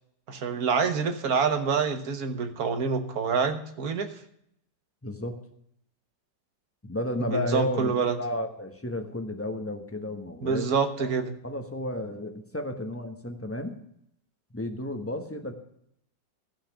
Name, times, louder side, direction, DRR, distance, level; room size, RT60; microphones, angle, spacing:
voice 1, 0.3-4.1 7.3-8.1 10.4-11.3, right 5 dB, 60° right, 8 dB, 1.6 m, -26 dB
voice 2, 5.0-5.4 6.8-10.7 11.0-11.1 11.4-13.8 14.5-15.5, left 1 dB, 10° left, 4 dB, 1.0 m, -33 dB
14.5 x 5.7 x 8.3 m, 0.73 s
omnidirectional pair, 1.9 m